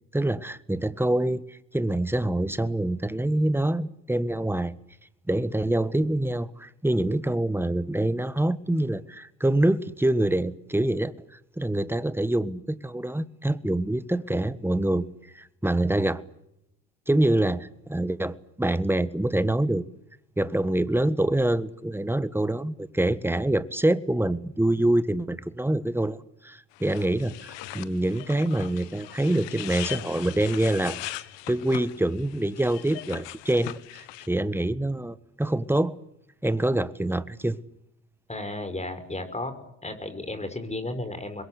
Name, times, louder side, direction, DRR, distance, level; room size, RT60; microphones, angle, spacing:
voice 1, 0.1-1.4 1.7-4.7 5.3-11.1 11.6-15.0 15.3-16.2 17.1-19.8 20.4-26.2 26.4-31.0 31.5-35.9 36.4-37.6, right 1 dB, 5° right, 1.5 m, -25 dB
sound 1, 26.7-34.3, left 15 dB, 65° left, 1.5 m, -39 dB
voice 2, 38.3-39.5 39.8-41.4, left 2 dB, 15° left, 5.5 m, -33 dB
26.0 x 22.0 x 8.1 m
hypercardioid pair, 65°, 46 cm